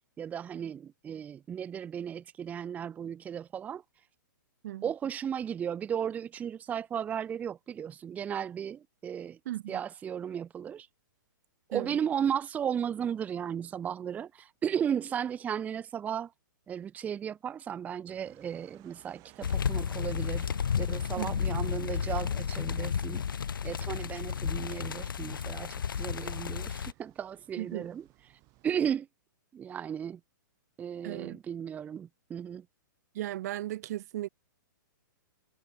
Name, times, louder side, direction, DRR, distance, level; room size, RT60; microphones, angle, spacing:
voice 1, 0.2-3.8 4.8-9.4 9.7-10.9 11.7-16.3 16.7-20.5 20.8-23.2 23.6-28.0 28.6-29.1 29.5-30.2 30.8-32.7, right 8 dB, 15° right, 0.7 m, -35 dB
voice 2, 9.5-9.8 11.7-11.9 21.2-21.5 27.6-27.9 31.0-31.4 33.1-34.3, right 14 dB, 50° right, 0.9 m, -36 dB
sound 1, 18.1-29.0, right 23 dB, 30° right, 4.8 m, -59 dB
sound 2, 19.4-26.9, left 7 dB, 85° left, 1.8 m, -32 dB
hypercardioid pair, 140°, 11 cm